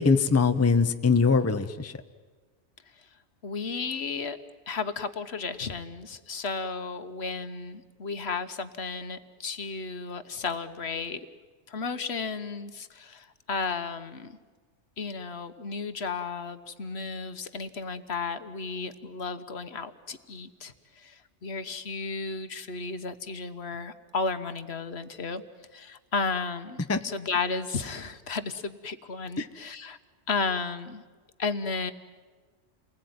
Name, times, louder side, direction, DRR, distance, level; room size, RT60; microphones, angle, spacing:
voice 1, 0.0-1.9 26.9-27.0 29.4-29.5, left 4 dB, 15° left, 9 dB, 0.7 m, -22 dB
voice 2, 3.4-4.4 4.7-11.2 11.7-14.4 15.0-25.4 25.7-30.0 30.3-31.0 31.4-31.9, left 4 dB, 65° left, 10 dB, 1.4 m, -33 dB
29.0 x 20.5 x 9.5 m, 1.4 s
omnidirectional pair, 1.2 m